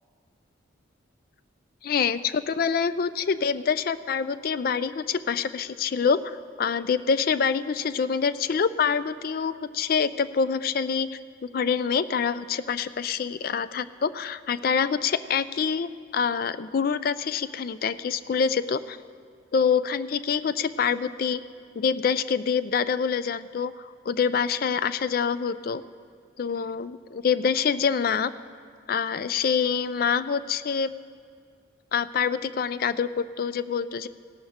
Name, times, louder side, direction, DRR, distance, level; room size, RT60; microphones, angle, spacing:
voice 1, 1.8-11.1 11.5-19.0 19.5-21.4 21.8-25.8 26.4-28.3 28.9-30.9 31.9-34.1, left 6 dB, 50° left, 15 dB, 0.3 m, -26 dB
16.5 x 11.5 x 3.6 m, 2.1 s
head